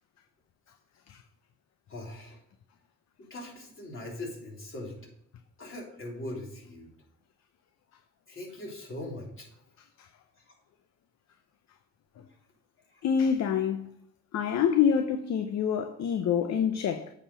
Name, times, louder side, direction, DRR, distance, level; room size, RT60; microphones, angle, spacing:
voice 1, 1.9-2.4 3.2-4.9 5.6-6.9 8.3-9.5 10.4-10.5 12.9-13.0, left 1 dB, 45° left, 3.4 m, -41 dB
voice 2, 13.0-13.9 14.3-17.1, left 7 dB, 60° left, 0.7 m, -26 dB
8.5 x 5.1 x 5.5 m
cardioid pair, 90°, 30 cm